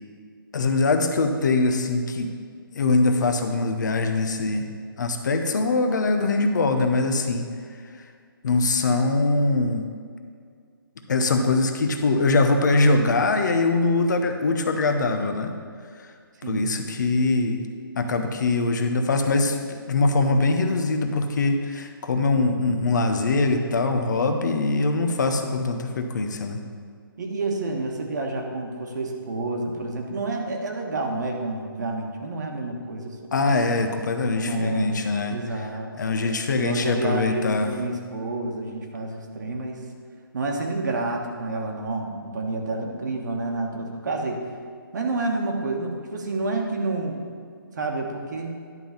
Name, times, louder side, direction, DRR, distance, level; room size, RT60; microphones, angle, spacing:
voice 1, 0.5-2.3 2.7-4.6 5.0-7.5 8.4-9.9 11.1-15.5 16.0-16.1 16.5-17.6 18.0-26.6 33.3-35.4 36.0-37.7, left 3 dB, 50° left, 6 dB, 0.9 m, -22 dB
voice 2, 16.4-16.8 27.2-33.2 34.3-35.9 36.5-39.8 40.3-44.4 44.9-47.3 47.7-48.6, right 2 dB, 50° right, 2 dB, 1.3 m, -29 dB
11.0 x 3.8 x 7.1 m, 2.1 s
hypercardioid pair, 160°, 12 cm